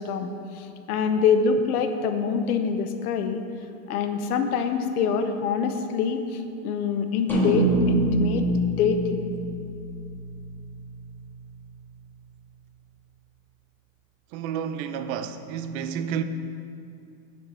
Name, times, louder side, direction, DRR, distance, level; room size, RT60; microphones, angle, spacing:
voice 1, 0.0-3.4 3.9-8.5 8.8-9.2, left 6 dB, 85° left, 0.8 m, -25 dB
sound 1, 7.3-11.8, right 1 dB, 5° left, 1.8 m, -26 dB
voice 2, 14.3-16.2, right 8 dB, 65° right, 0.6 m, -30 dB
8.7 x 4.7 x 5.6 m
supercardioid pair, 130°, 43 cm